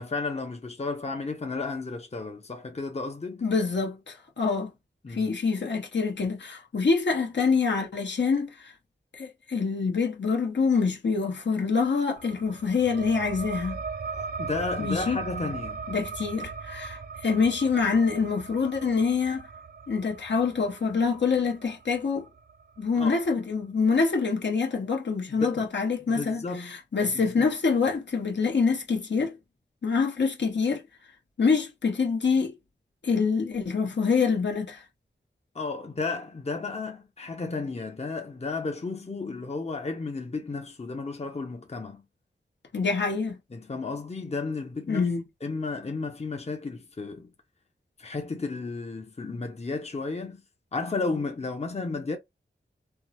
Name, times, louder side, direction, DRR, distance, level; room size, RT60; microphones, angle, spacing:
voice 1, 0.0-3.5 5.0-5.3 14.1-15.8 22.9-23.2 25.3-25.6 26.1-26.8 27.0-27.5 35.5-42.0 43.5-45.1 45.4-47.3 48.0-50.4 50.7-52.2, left 3 dB, 35° left, 0.8 m, -33 dB
voice 2, 3.4-4.7 5.1-8.7 9.1-13.8 14.8-15.2 15.9-19.5 19.9-22.3 22.8-29.4 29.8-30.8 31.4-32.5 33.0-34.8 42.7-43.4 44.9-45.2, left 5 dB, 70° left, 1.0 m, -26 dB
sound 1, 12.2-23.3, right 5 dB, 55° right, 0.5 m, -39 dB
3.5 x 2.0 x 2.9 m
wide cardioid pair, 50°, 19 cm